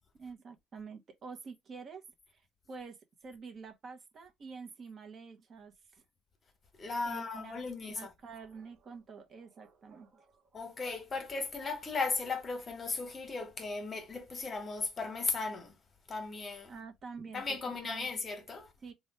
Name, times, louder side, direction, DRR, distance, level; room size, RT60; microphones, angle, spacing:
voice 1, 0.1-2.4 2.7-6.0 7.0-10.6 16.7-18.1 18.8-18.9, right 5 dB, 45° right, 0.8 m, -48 dB
voice 2, 6.8-8.1 10.5-15.7 16.1-16.7 17.3-18.7, left 4 dB, 35° left, 1.1 m, -36 dB
3.0 x 2.3 x 4.2 m
cardioid pair, 90°, 0 cm